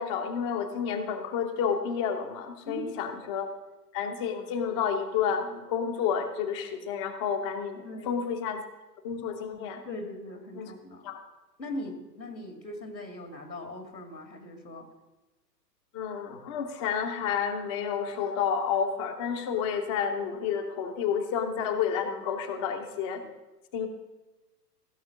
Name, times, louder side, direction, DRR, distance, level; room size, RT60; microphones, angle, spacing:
voice 1, 0.0-3.5 3.9-8.6 9.0-9.8 10.5-10.7 11.0-11.2 15.9-23.2 23.7-23.9, left 7 dB, 20° left, 5 dB, 0.5 m, -30 dB
voice 2, 2.7-3.1 7.8-8.2 9.8-11.1 11.6-14.9, left 1 dB, 85° left, 5 dB, 2.4 m, -40 dB
15.5 x 6.2 x 6.1 m, 1.1 s
figure-of-eight pair, 115°, 50 cm